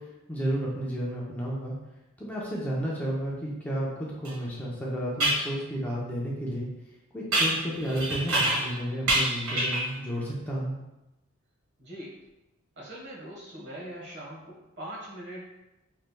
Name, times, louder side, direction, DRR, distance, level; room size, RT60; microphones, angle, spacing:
voice 1, 0.3-1.7 2.2-6.7 7.1-10.7, right 1 dB, 5° left, -5 dB, 0.6 m, -32 dB
sound 1, 4.2-4.3 5.2-5.5 7.3-8.8 9.1-10.0, right 1 dB, 80° right, 1.3 m, -26 dB
voice 2, 11.8-12.1 12.8-15.5, right 1 dB, 55° right, -3 dB, 1.2 m, -41 dB
5.4 x 3.2 x 2.2 m, 0.97 s
head